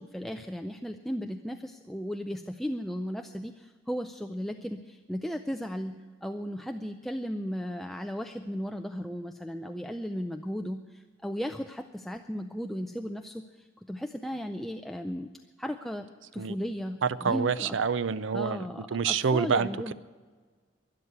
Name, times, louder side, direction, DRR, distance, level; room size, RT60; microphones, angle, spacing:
voice 1, 0.0-15.3 15.6-16.1 16.3-17.8 18.3-19.9, equal, ahead, 5 dB, 0.4 m, -35 dB
voice 2, 17.0-18.6 18.9-19.9, right 6 dB, 90° right, 16 dB, 0.5 m, -27 dB
12.5 x 11.0 x 9.5 m, 1.5 s
head